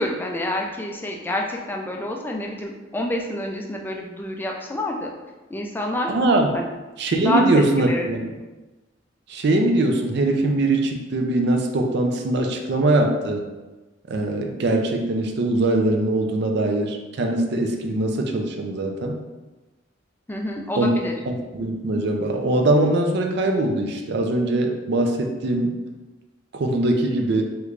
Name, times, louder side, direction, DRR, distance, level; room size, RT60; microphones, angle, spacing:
voice 1, 0.0-5.1 5.5-6.1 6.5-6.7 7.2-8.3 20.3-21.2, left 1 dB, 10° left, 0 dB, 0.3 m, -27 dB
voice 2, 6.1-6.5 7.0-8.2 9.3-13.4 14.1-19.2 20.8-20.9 21.3-25.8 26.5-27.4, right 2 dB, 60° right, 3 dB, 0.4 m, -22 dB
3.2 x 3.1 x 2.4 m, 1.2 s
head